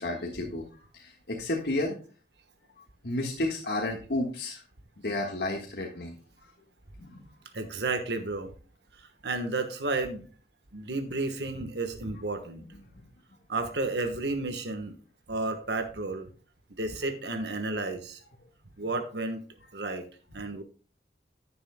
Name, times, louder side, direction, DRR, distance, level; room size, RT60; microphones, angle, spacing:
voice 1, 0.0-2.0 3.0-4.6 5.0-6.1 7.0-7.2, left 2 dB, 65° left, 0 dB, 1.6 m, -32 dB
voice 2, 7.5-8.5 8.9-10.3 10.7-12.7 13.5-15.0 15.3-16.3 16.7-18.2 18.8-19.4 19.7-20.0 20.3-20.6, right 2 dB, 75° right, 7 dB, 1.3 m, -32 dB
11.0 x 9.6 x 2.2 m, 0.39 s
head